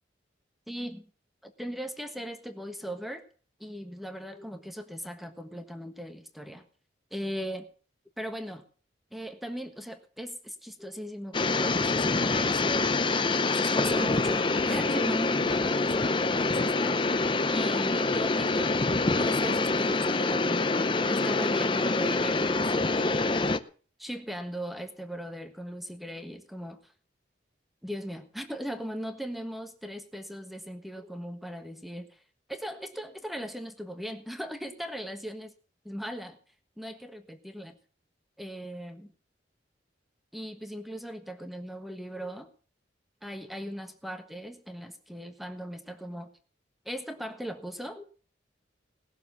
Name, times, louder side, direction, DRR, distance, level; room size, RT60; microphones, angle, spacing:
voice 1, 0.7-1.1 1.4-3.2 3.6-6.6 7.1-7.7 8.2-8.6 9.1-12.9 13.5-17.2 17.5-18.8 19.2-22.6 22.9-23.4 24.0-26.8 27.8-32.1 32.5-35.5 35.8-36.4 36.8-37.8 38.4-39.1 40.3-42.5 43.2-46.3 46.8-48.0, equal, ahead, 7 dB, 1.3 m, -38 dB
sound 1, 11.3-23.6, left 3 dB, 25° left, 0.6 m, -26 dB
18.5 x 7.1 x 6.9 m, 0.42 s
head